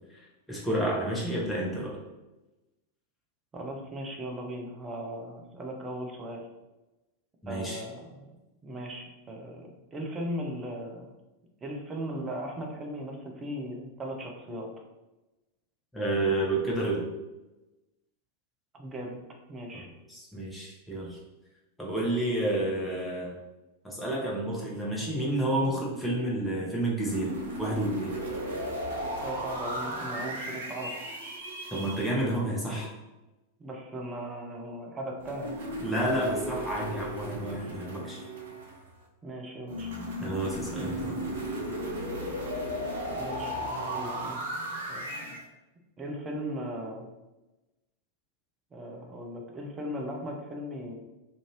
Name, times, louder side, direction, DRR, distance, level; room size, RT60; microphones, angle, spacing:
voice 1, 0.5-2.0 7.4-7.8 15.9-17.0 19.7-19.8 20.1-21.2 21.8-23.4 23.8-27.3 27.6-28.1 31.7-32.9 35.8-38.2 40.2-41.2, right 1 dB, 5° left, -4 dB, 0.9 m, -30 dB
voice 2, 3.5-6.5 7.5-8.2 8.6-11.1 11.6-14.7 18.7-19.2 19.5-19.9 29.2-31.0 33.6-35.6 39.2-39.9 40.8-41.3 43.1-44.4 44.9-45.4 46.0-47.1 48.7-50.9, equal, 20° right, 0 dB, 0.6 m, -38 dB
sound 1, 27.0-32.1 35.2-39.0 39.7-45.4, right 1 dB, 60° right, 0.6 m, -35 dB
2.5 x 2.5 x 3.1 m, 1.0 s
figure-of-eight pair, 90°, 0 cm